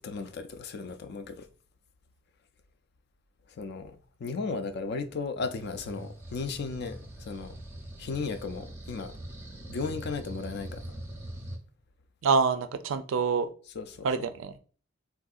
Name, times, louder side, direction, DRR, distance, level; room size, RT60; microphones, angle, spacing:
voice 1, 0.0-1.5 3.6-7.6 8.0-9.1 9.7-10.8 13.8-14.1, left 4 dB, 55° left, 0.4 m, -35 dB
sound 1, 5.4-11.6, right 1 dB, 10° right, 0.5 m, -43 dB
voice 2, 12.2-13.5 14.0-14.6, right 5 dB, 75° right, 0.4 m, -26 dB
3.5 x 2.6 x 2.3 m
head